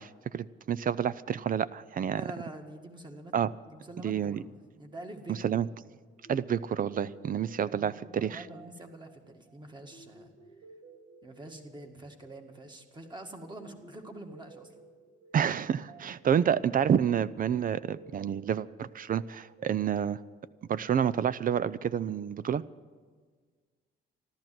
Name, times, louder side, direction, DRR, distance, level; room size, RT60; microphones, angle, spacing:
voice 1, 0.0-2.2 3.3-3.5 4.0-4.4 5.3-5.7 6.3-8.4 15.3-20.2 20.7-22.6, right 8 dB, 45° right, 18 dB, 0.5 m, -29 dB
voice 2, 2.1-3.3 3.7-5.7 7.5-10.3 11.2-14.7, right 1 dB, 20° right, 4 dB, 1.9 m, -46 dB
sound 1, 6.2-21.0, right 3 dB, 65° right, 3.5 m, -56 dB
14.5 x 12.0 x 7.6 m, 1.5 s
cardioid pair, 90°, 20 cm